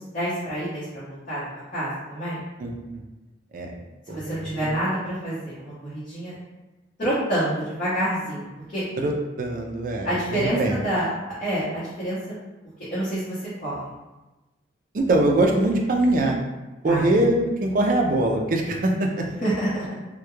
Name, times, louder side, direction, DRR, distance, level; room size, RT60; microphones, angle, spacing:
voice 1, 0.1-1.4 1.7-2.4 4.1-6.4 7.0-8.5 8.7-8.8 10.0-12.2 12.9-13.8 16.8-17.0 19.4-19.8, right 1 dB, 45° left, -12 dB, 0.8 m, -27 dB
voice 2, 2.6-3.0 3.5-3.7 4.1-4.7 9.0-10.8 14.9-16.4 16.8-19.3, right 1 dB, 45° right, 1 dB, 0.3 m, -23 dB
2.3 x 2.1 x 3.0 m, 1.1 s
head